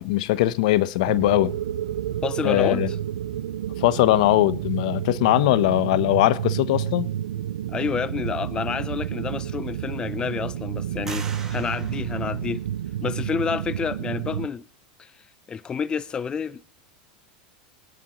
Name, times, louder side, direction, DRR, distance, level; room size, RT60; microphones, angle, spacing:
voice 1, 0.0-1.6 2.4-2.9 3.8-7.1, left 15 dB, 70° left, 0.9 m, -20 dB
sound 1, 1.0-14.5, right 11 dB, 90° right, 0.6 m, -30 dB
voice 2, 2.2-3.0 7.7-12.6 13.0-14.7 15.0-15.1 15.5-16.6, left 6 dB, 20° left, 0.6 m, -29 dB
sound 2, 11.1-13.0, right 4 dB, 10° right, 4.0 m, -42 dB
23.5 x 10.5 x 3.1 m
supercardioid pair, 125°, 4 cm